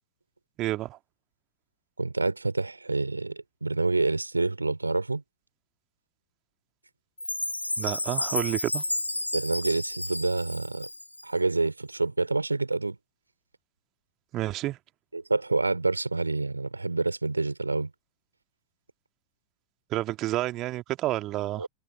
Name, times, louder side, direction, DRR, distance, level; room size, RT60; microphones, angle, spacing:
voice 1, 0.6-1.0 7.8-8.8 14.3-14.8 19.9-21.7, right 16 dB, 35° right, 1.8 m, -29 dB
voice 2, 2.0-5.2 9.3-10.9 11.2-13.0 15.1-17.9 21.6-21.7, right 3 dB, 80° right, 2.8 m, -27 dB
Chime, 7.2-11.4, left 1 dB, 85° left, 1.3 m, -32 dB
figure-of-eight pair, 90°, 0 cm